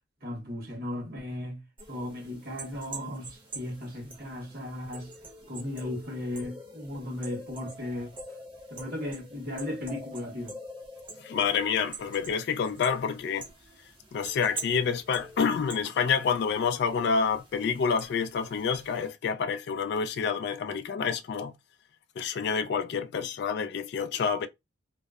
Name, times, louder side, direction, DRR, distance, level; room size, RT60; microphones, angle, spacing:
voice 1, 0.2-1.6 1.9-5.1 5.5-8.2 8.7-10.6, left 1 dB, 55° right, 1.2 m, -36 dB
sound 1, 1.8-19.1, right 1 dB, 25° right, 0.8 m, -45 dB
voice 2, 11.2-13.5 14.1-21.5 22.2-24.5, left 6 dB, 60° left, 0.3 m, -28 dB
2.7 x 2.0 x 2.3 m
head